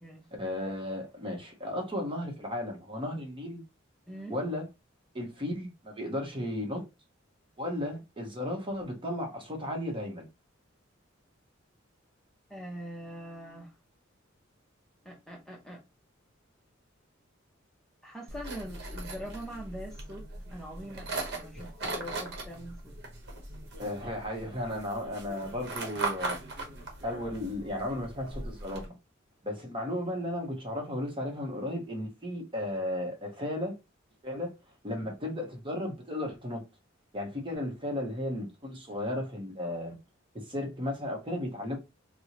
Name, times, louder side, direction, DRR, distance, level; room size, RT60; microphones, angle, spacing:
voice 1, 0.4-3.6 4.3-4.7 5.1-6.8 7.6-10.3 23.8-26.4 27.0-28.9 29.4-33.8 34.2-34.5 34.8-36.6 37.1-40.0 40.3-41.8, left 1 dB, 25° right, 0.9 m, -34 dB
voice 2, 4.1-4.4 12.5-13.7 15.0-15.8 18.0-20.2 20.5-21.1 21.3-23.0, equal, 5° left, 0.7 m, -42 dB
sound 1, 18.3-28.9, right 2 dB, 55° right, 0.9 m, -39 dB
4.2 x 2.1 x 2.9 m
head